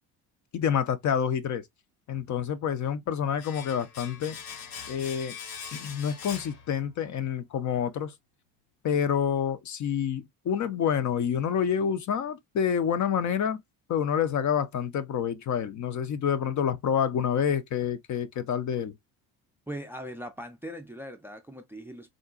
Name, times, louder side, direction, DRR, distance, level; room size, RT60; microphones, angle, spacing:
voice 1, 0.5-1.6 2.1-4.4 4.9-5.4 5.7-8.1 8.8-13.6 13.9-18.9, left 8 dB, 45° left, 0.5 m, -28 dB
Domestic sounds home sounds, 3.4-7.2 7.5-7.6, left 7 dB, 70° left, 1.0 m, -42 dB
voice 2, 19.7-22.1, equal, 5° right, 0.4 m, -40 dB
3.7 x 2.1 x 2.3 m
cardioid pair, 115°, 40 cm